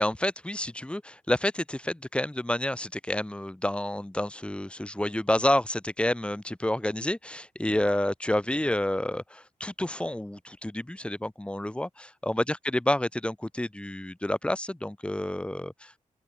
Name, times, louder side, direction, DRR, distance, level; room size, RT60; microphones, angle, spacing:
voice 1, 0.0-16.0, left 1 dB, 10° left, 2.8 m, -29 dB
open air
wide cardioid pair, 125°, 14 cm